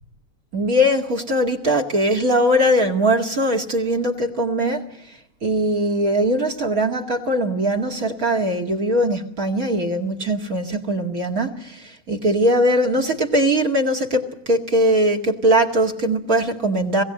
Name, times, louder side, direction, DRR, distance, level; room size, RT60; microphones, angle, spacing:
voice 1, 0.5-17.0, equal, 70° right, 2 dB, 2.6 m, -20 dB
21.0 x 17.0 x 7.8 m, 0.72 s
omnidirectional pair, 1.6 m